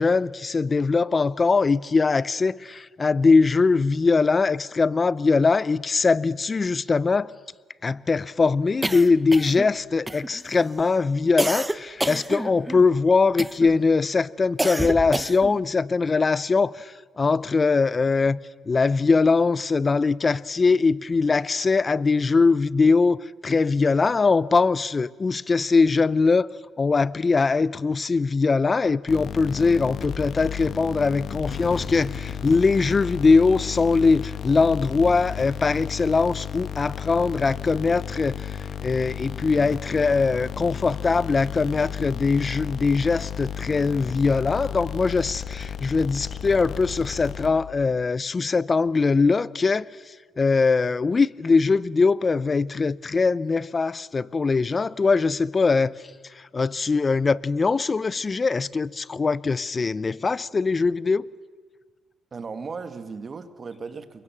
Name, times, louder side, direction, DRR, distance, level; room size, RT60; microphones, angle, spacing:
voice 1, 0.0-7.4 7.8-18.4 18.7-26.5 26.8-56.0 56.3-61.3, left 4 dB, 30° left, 0.7 m, -21 dB
sound 1, 8.8-9.7 10.1-10.6 11.4-12.9 13.4-13.8 14.6-15.6, right 1 dB, 10° right, 0.9 m, -29 dB
sound 2, 29.1-47.9, left 8 dB, 60° left, 1.8 m, -33 dB
voice 2, 62.3-64.2, right 4 dB, 40° right, 2.0 m, -36 dB
28.5 x 23.0 x 7.4 m
cardioid pair, 90°, 0 cm